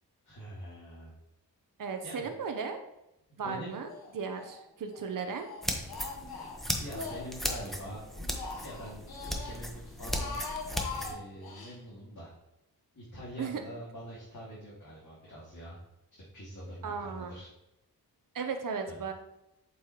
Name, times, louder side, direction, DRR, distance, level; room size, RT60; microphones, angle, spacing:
voice 1, 0.2-1.1 2.0-2.3 3.4-3.8 6.8-8.0 8.6-9.0 9.2-10.4 11.0-12.3 12.9-15.8 16.3-17.5 18.9-19.0, equal, 55° left, -7 dB, 2.3 m, -44 dB
voice 2, 1.8-2.8 3.4-5.5 13.4-13.6 16.8-17.3 18.3-19.1, right 5 dB, 60° right, 5 dB, 0.8 m, -36 dB
Speech, 3.9-4.6 4.9-7.7 8.1-9.6 10.0-11.7, left 4 dB, 75° left, 1.5 m, -42 dB
sound 1, 5.6-11.1, equal, ahead, 1.2 m, -36 dB
7.7 x 5.6 x 3.0 m, 0.89 s
cardioid pair, 70°, 38 cm